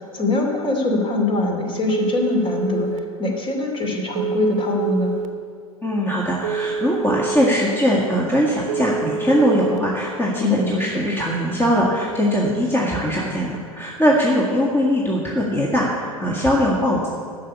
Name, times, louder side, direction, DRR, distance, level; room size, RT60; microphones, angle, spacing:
voice 1, 0.1-5.1 10.4-10.8, left 2 dB, 30° left, 2 dB, 2.6 m, -22 dB
Telephone, 1.9-3.0 4.2-5.3 6.4-7.5 8.7-9.8, right 5 dB, 55° right, 1.0 m, -26 dB
voice 2, 5.8-17.1, equal, 10° left, -4 dB, 1.8 m, -21 dB
12.0 x 6.9 x 8.4 m, 2.2 s
figure-of-eight pair, 90°, 19 cm